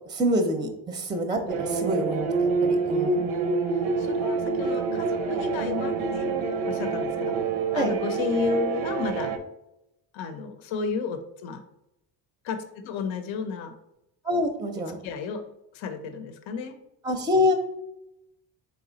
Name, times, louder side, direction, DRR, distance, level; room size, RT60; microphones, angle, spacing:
voice 1, 0.1-3.3 7.7-8.0 14.2-15.0 17.0-17.5, left 1 dB, 10° right, 6 dB, 0.5 m, -26 dB
sound 1, 1.5-9.4, right 4 dB, 85° right, 0.7 m, -27 dB
voice 2, 3.7-6.4 6.7-7.4 7.7-9.3 10.1-11.6 12.4-13.7 15.0-15.5 15.7-16.8, left 5 dB, 80° left, 9 dB, 0.6 m, -32 dB
3.9 x 3.4 x 3.9 m, 0.87 s
cardioid pair, 105°, 46 cm